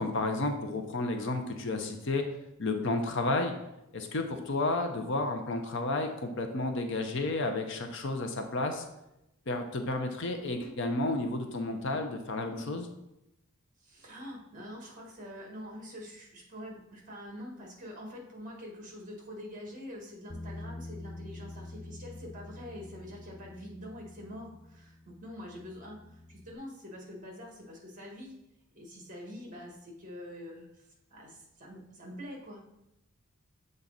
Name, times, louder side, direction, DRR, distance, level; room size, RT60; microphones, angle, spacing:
voice 1, 0.0-2.2 2.6-3.5 3.9-8.8 9.5-12.9, left 2 dB, 55° left, 5 dB, 0.7 m, -31 dB
voice 2, 13.8-28.3 28.7-32.6, equal, 35° right, -1 dB, 1.5 m, -45 dB
Bass guitar, 20.3-26.5, left 2 dB, 15° left, 0.3 m, -46 dB
7.2 x 3.9 x 4.0 m, 0.87 s
head